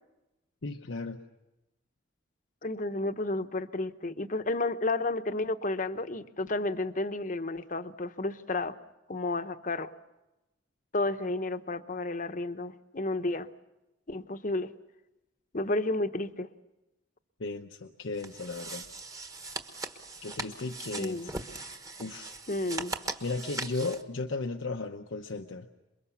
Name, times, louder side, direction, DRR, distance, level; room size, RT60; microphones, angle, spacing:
voice 1, 0.6-1.2 17.4-18.8 20.2-21.5 22.0-22.4 23.2-25.7, left 3 dB, 85° left, 4 dB, 0.9 m, -35 dB
voice 2, 2.6-8.7 9.1-9.9 10.9-13.5 14.1-14.7 15.5-16.5 21.0-21.3 22.5-22.9, left 2 dB, 40° left, 10 dB, 0.9 m, -31 dB
sound 1, 18.2-24.0, right 2 dB, 20° right, 1.3 m, -40 dB
28.0 x 22.5 x 7.1 m, 0.98 s
head